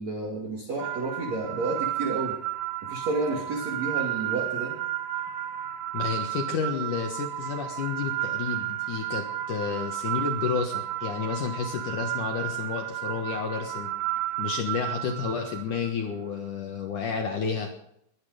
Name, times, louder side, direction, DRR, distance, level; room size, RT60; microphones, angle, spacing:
voice 1, 0.0-2.4 2.8-4.8, right 3 dB, 45° right, -1 dB, 3.0 m, -30 dB
sound 1, 0.8-15.9, right 14 dB, 80° right, 1.9 m, -32 dB
voice 2, 5.9-13.9 14.4-17.7, left 6 dB, 60° left, 3 dB, 2.4 m, -31 dB
22.0 x 10.5 x 5.1 m, 0.74 s
omnidirectional pair, 4.9 m